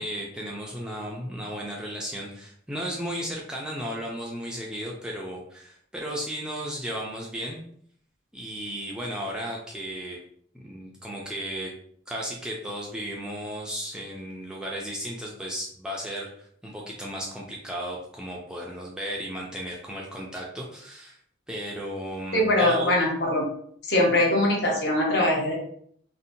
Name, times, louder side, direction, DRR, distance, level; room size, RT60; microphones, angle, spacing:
voice 1, 0.0-7.6 8.3-10.2 10.5-11.7 12.1-21.2 21.5-22.9, equal, 5° right, -3 dB, 0.3 m, -35 dB
voice 2, 22.3-23.5 23.9-25.5, left 1 dB, 60° left, -2 dB, 0.8 m, -22 dB
2.7 x 2.1 x 2.6 m, 0.63 s
head